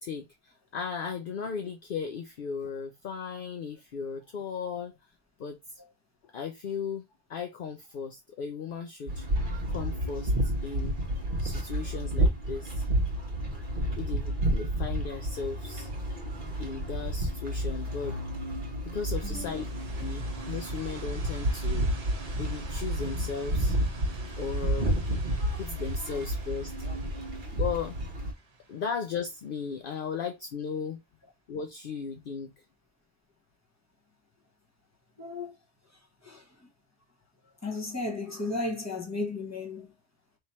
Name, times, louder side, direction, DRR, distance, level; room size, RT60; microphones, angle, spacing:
voice 1, 0.0-5.0 5.4-5.8 6.3-7.0 7.3-9.3 9.7-11.0 11.4-12.9 14.0-15.9 16.6-18.2 18.8-19.7 20.0-21.9 22.4-23.8 24.4-25.0 25.6-26.7 27.5-28.0 28.7-31.0 31.5-32.5, left 6 dB, 60° left, 0.7 m, -36 dB
sound 1, 9.1-28.3, right 1 dB, 50° right, 1.2 m, -30 dB
sound 2, 19.0-29.7, right 3 dB, 70° right, 1.3 m, -47 dB
voice 2, 19.2-19.7 30.1-30.2 35.2-35.5 36.2-36.5 37.6-39.9, left 2 dB, 15° left, 1.2 m, -34 dB
3.3 x 3.0 x 4.2 m
omnidirectional pair, 1.1 m